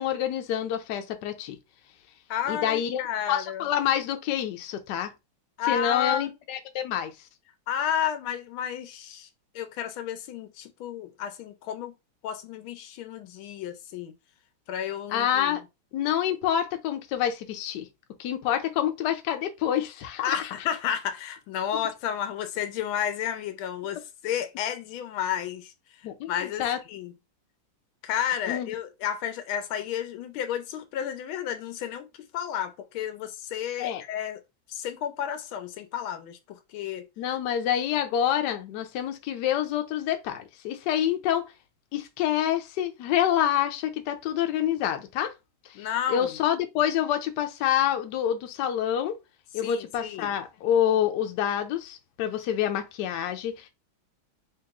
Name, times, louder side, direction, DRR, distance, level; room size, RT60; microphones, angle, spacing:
voice 1, 0.0-1.6 2.5-3.0 3.3-5.1 5.7-7.1 15.1-15.6 15.9-17.9 18.2-20.5 26.0-26.8 28.5-28.7 33.8-34.0 37.2-41.5 41.9-45.3 46.1-49.2 49.5-53.7, left 10 dB, 70° left, 1.1 m, -27 dB
voice 2, 2.3-3.6 5.6-6.3 7.7-9.3 9.5-11.9 12.2-14.1 14.7-15.6 20.2-25.7 26.3-27.1 28.0-32.1 32.3-34.4 34.7-37.1 45.7-46.4 49.6-50.3, left 9 dB, 85° left, 1.5 m, -32 dB
3.1 x 2.9 x 3.5 m
omnidirectional pair, 2.2 m